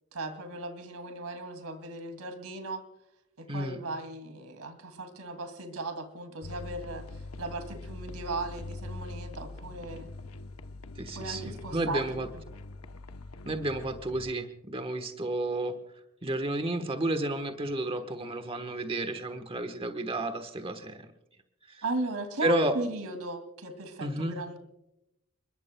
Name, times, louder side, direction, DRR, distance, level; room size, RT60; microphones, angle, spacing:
voice 1, 0.1-2.8 3.4-10.1 11.1-12.4 21.8-24.6, right 2 dB, 85° right, 9 dB, 2.5 m, -37 dB
voice 2, 3.5-3.8 11.0-12.3 13.4-15.8 16.2-21.1 21.7-21.8 22.4-22.8 24.0-24.4, right 1 dB, 25° right, 8 dB, 1.2 m, -31 dB
sound 1, 6.4-14.3, left 2 dB, 85° left, 0.9 m, -43 dB
30.0 x 21.5 x 2.2 m, 0.86 s
head